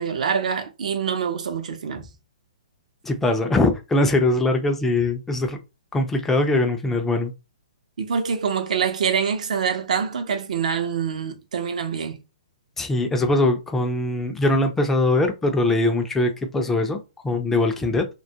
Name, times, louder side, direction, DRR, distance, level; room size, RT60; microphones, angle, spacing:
voice 1, 0.0-2.1 8.0-12.2, right 6 dB, 70° right, 0.6 m, -25 dB
voice 2, 3.0-5.6 5.9-7.3 12.8-18.1, left 2 dB, 5° left, 0.4 m, -22 dB
2.2 x 2.1 x 2.7 m
hypercardioid pair, 150°, 4 cm